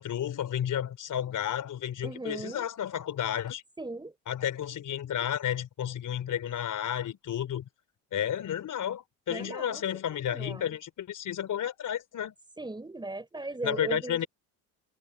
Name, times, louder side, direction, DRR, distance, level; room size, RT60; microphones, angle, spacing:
voice 1, 0.0-3.6 4.3-7.7 8.1-12.3 13.6-14.3, left 10 dB, 50° left, 3.9 m, -32 dB
voice 2, 2.0-2.7 3.8-4.1 9.3-9.9 10.2-10.8 12.6-14.3, right 2 dB, 10° right, 4.9 m, -38 dB
supercardioid pair, 90°, 41 cm